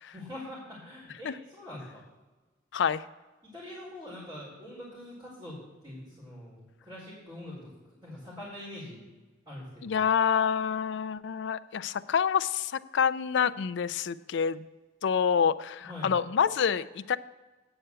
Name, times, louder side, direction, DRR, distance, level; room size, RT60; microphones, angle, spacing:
voice 1, 0.1-2.0 3.4-7.7 8.0-9.0 9.5-10.0 15.8-16.1, left 1 dB, 25° right, -8 dB, 3.9 m, -44 dB
voice 2, 2.7-3.0 9.8-14.7 15.0-17.2, left 7 dB, 65° left, 13 dB, 0.4 m, -27 dB
8.8 x 5.6 x 7.9 m, 1.2 s
head